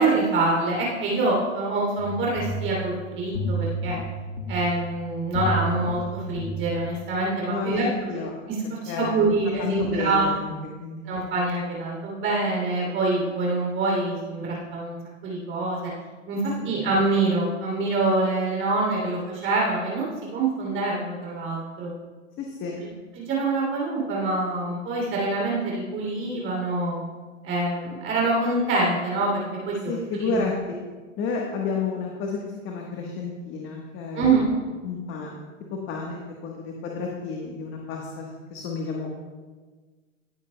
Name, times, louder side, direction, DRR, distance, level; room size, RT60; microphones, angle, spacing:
voice 1, 0.0-4.0 4.5-7.9 8.5-8.6 8.8-10.3 11.0-15.0 15.2-15.9 16.3-21.9 22.8-22.9 23.1-27.0 27.4-30.4 34.1-34.5, right 2 dB, 30° right, -3 dB, 2.9 m, -25 dB
sound 1, 2.0-7.2, right 1 dB, 75° left, 1.9 m, -31 dB
voice 2, 7.5-8.4 8.9-10.5 10.8-11.0 16.6-16.8 22.4-22.8 29.9-30.8 31.2-32.4 32.6-34.3 34.8-35.3 35.9-39.1, left 4 dB, 30° left, 0 dB, 1.3 m, -31 dB
16.5 x 8.1 x 2.2 m, 1.4 s
hypercardioid pair, 120°, 38 cm